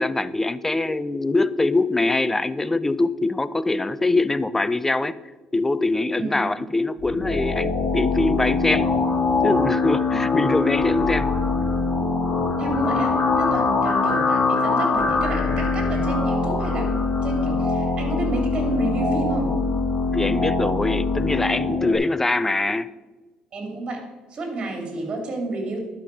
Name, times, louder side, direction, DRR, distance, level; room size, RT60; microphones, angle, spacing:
voice 1, 0.0-5.2 5.5-8.9 9.4-11.3 20.1-22.9, left 2 dB, 15° left, 16 dB, 0.4 m, -23 dB
sound 1, 7.0-22.0, left 4 dB, 50° left, 2.2 m, -23 dB
voice 2, 12.6-19.5 23.5-24.0 24.3-25.8, right 2 dB, 45° right, 2 dB, 3.2 m, -30 dB
11.5 x 5.9 x 4.9 m, 1.2 s
cardioid pair, 85°, 2 cm